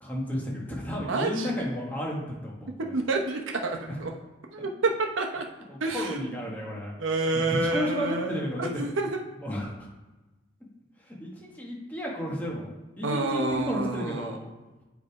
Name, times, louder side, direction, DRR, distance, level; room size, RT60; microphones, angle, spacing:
voice 1, 0.0-2.7 3.9-4.0 4.6-4.7 5.7-6.9 7.3-8.8 9.4-9.9 11.0-12.7 13.0-14.5, equal, 10° left, -3 dB, 1.3 m, -32 dB
voice 2, 0.9-1.7 2.8-4.1 4.5-5.5 5.8-6.4 7.0-9.2 13.0-14.4, right 2 dB, 80° right, 2 dB, 0.9 m, -29 dB
7.6 x 3.4 x 4.7 m, 1.1 s
head